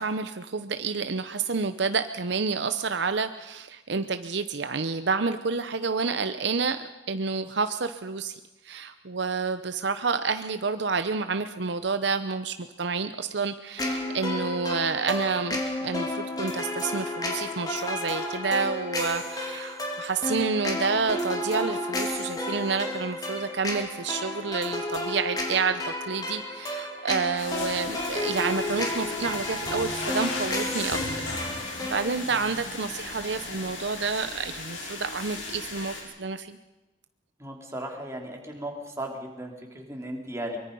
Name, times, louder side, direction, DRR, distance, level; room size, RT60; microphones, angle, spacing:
voice 1, 0.0-8.4 8.6-31.0 31.5-36.6, right 4 dB, 60° right, 10 dB, 0.8 m, -29 dB
sound 1, 13.8-32.1, left 1 dB, 20° left, 2.9 m, -32 dB
sound 2, 27.4-36.0, left 3 dB, 85° left, 6.3 m, -36 dB
voice 2, 32.3-32.6 37.4-40.6, right 1 dB, 15° right, 1 dB, 3.3 m, -36 dB
23.5 x 23.0 x 5.4 m, 1.1 s
head